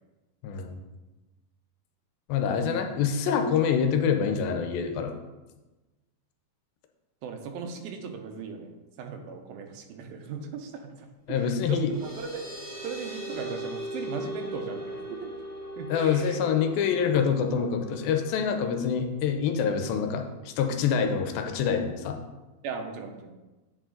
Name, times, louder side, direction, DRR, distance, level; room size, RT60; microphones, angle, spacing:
voice 1, 0.4-0.8 2.3-5.2 11.3-11.9 15.9-22.2, left 7 dB, 85° left, 5 dB, 2.5 m, -26 dB
voice 2, 7.2-12.5 12.8-15.3 15.8-16.4 22.6-23.4, right 5 dB, 90° right, 5 dB, 2.5 m, -38 dB
sound 1, 11.4-18.6, right 1 dB, 30° right, 1.9 m, -39 dB
8.5 x 5.0 x 3.8 m, 1.1 s
omnidirectional pair, 4.2 m